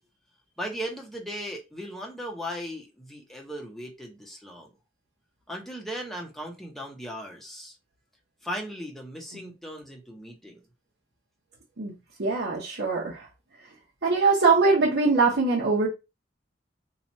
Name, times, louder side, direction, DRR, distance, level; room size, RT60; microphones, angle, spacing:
voice 1, 0.6-4.7 5.5-7.8 8.4-10.6, equal, ahead, 0.8 m, -37 dB
voice 2, 12.2-13.3 14.0-15.9, right 4 dB, 70° right, 0.9 m, -22 dB
2.9 x 2.3 x 4.0 m
head